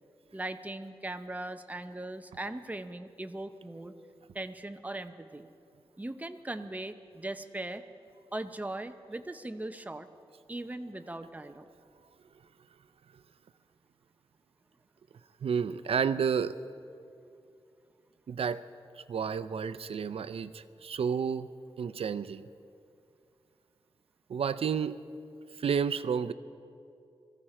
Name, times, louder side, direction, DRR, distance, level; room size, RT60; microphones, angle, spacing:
voice 1, 0.3-3.9 4.3-5.5 6.0-7.8 8.3-10.1 10.5-11.7, right 2 dB, 15° right, 9 dB, 0.7 m, -39 dB
voice 2, 15.4-16.5 18.3-18.6 19.1-21.5 21.8-22.4 24.3-25.0 25.6-26.3, right 6 dB, 85° right, 14 dB, 0.5 m, -30 dB
22.0 x 14.5 x 4.3 m, 2.5 s
wide cardioid pair, 115°, 10 cm